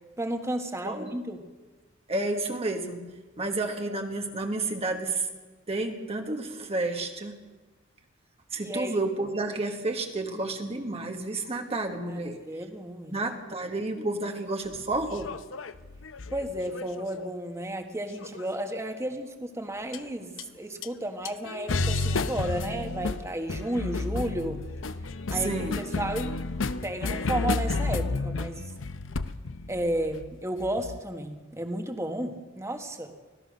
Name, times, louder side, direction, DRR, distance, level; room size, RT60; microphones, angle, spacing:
voice 1, 0.2-1.4 8.6-9.0 12.1-12.2 12.5-13.2 16.3-24.6 25.3-25.7 26.0-26.3 26.8-28.6 29.7-33.1, right 1 dB, 15° right, 5 dB, 1.5 m, -33 dB
voice 2, 2.1-3.1 3.4-5.3 5.7-7.3 8.5-12.4 13.1-15.3 25.3-25.8, right 2 dB, 30° right, 4 dB, 1.4 m, -30 dB
sound 1, 14.7-17.3 18.2-18.7 19.9-20.1 20.4-20.5 20.8-20.9 21.2-31.0, left 3 dB, 75° left, 0.8 m, -32 dB
25.0 x 16.5 x 6.5 m, 1.2 s
head